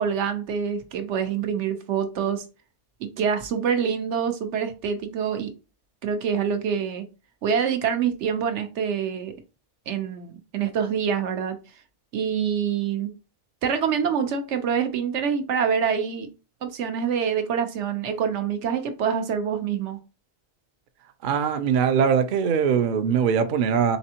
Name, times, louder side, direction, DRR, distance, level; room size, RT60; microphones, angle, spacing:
voice 1, 0.0-2.4 3.0-5.5 6.0-7.1 7.4-9.3 9.9-11.6 12.1-13.1 13.6-16.3 16.6-20.0, right 7 dB, 80° right, 1.0 m, -26 dB
voice 2, 21.2-24.0, right 7 dB, 55° right, 0.6 m, -21 dB
4.0 x 3.4 x 2.8 m
omnidirectional pair, 1.2 m